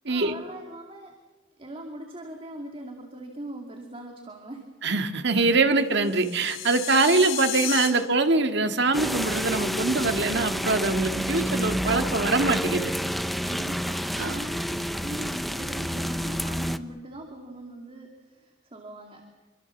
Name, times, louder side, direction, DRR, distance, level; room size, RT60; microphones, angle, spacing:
voice 1, 0.1-1.2 1.6-4.7 13.4-19.3, right 1 dB, 30° right, 2 dB, 2.4 m, -40 dB
voice 2, 4.8-12.9 14.2-14.4, right 3 dB, 60° right, 7 dB, 1.9 m, -23 dB
sound 1, 6.1-7.9, left 10 dB, 85° left, 5.0 m, -32 dB
sound 2, 8.9-16.8, equal, ahead, 0.7 m, -29 dB
27.0 x 24.5 x 7.2 m, 1.3 s
head